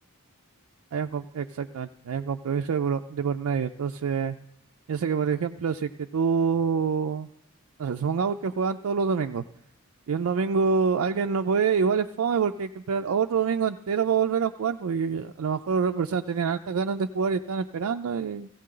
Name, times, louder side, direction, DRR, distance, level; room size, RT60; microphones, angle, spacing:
voice 1, 0.9-4.4 4.9-7.3 7.8-9.4 10.1-18.5, right 6 dB, 75° right, 6 dB, 0.4 m, -26 dB
16.0 x 15.5 x 3.8 m, 0.77 s
head